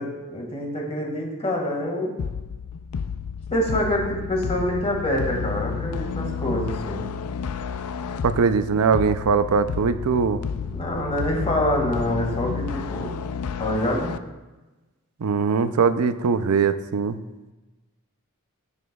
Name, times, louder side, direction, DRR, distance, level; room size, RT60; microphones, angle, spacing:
voice 1, 0.0-2.1 3.5-7.1 10.7-13.2 13.6-14.1, left 1 dB, 30° left, 0 dB, 1.9 m, -26 dB
sound 1, 2.2-14.2, left 6 dB, 80° left, 0.4 m, -31 dB
voice 2, 8.2-10.4 15.2-17.2, right 5 dB, 70° right, 12 dB, 0.5 m, -21 dB
15.5 x 7.1 x 2.3 m, 1.1 s
head